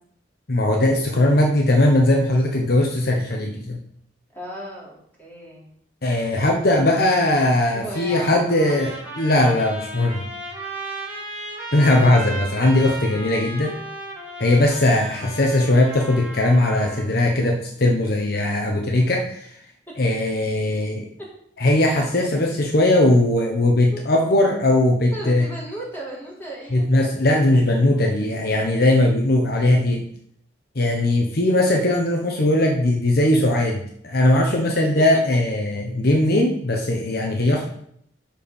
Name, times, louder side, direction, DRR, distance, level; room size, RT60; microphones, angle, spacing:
voice 1, 0.5-3.8 6.0-10.2 11.7-13.8 14.4-19.5 20.0-21.1 21.6-25.5 26.7-30.1 30.7-37.6, left 1 dB, 60° left, 1 dB, 1.1 m, -19 dB
voice 2, 4.3-5.7 7.7-8.4 8.6-8.8 18.7-18.8 19.9-20.0 21.2-21.3 21.9-22.0 23.9-24.0 25.1-26.9 31.3-31.4 34.6-34.8, right 1 dB, 10° left, -6 dB, 3.7 m, -36 dB
Trumpet, 8.5-17.1, right 1 dB, 10° right, 3.4 m, -35 dB
11.5 x 4.7 x 5.4 m, 0.70 s
head